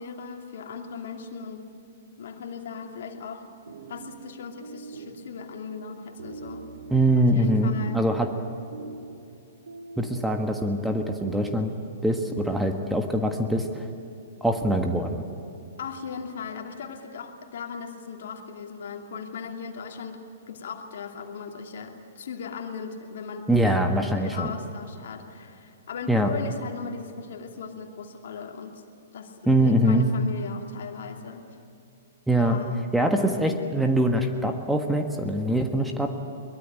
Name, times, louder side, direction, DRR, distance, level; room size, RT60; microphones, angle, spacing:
voice 1, 0.0-1.6 2.2-3.5 3.9-6.6 7.2-8.1 15.8-20.2 20.5-23.7 24.1-28.8 29.1-31.5 32.4-32.8, left 5 dB, 60° left, 3 dB, 2.6 m, -38 dB
sound 1, 3.4-11.9, right 3 dB, 75° right, 2.6 m, -43 dB
voice 2, 6.9-8.3 10.0-11.7 12.0-13.8 14.4-15.2 23.5-24.5 26.1-26.3 29.5-30.1 32.3-32.6 32.9-36.1, right 1 dB, 5° right, 4 dB, 1.5 m, -23 dB
23.0 x 21.5 x 8.9 m, 2.7 s
figure-of-eight pair, 115°, 0 cm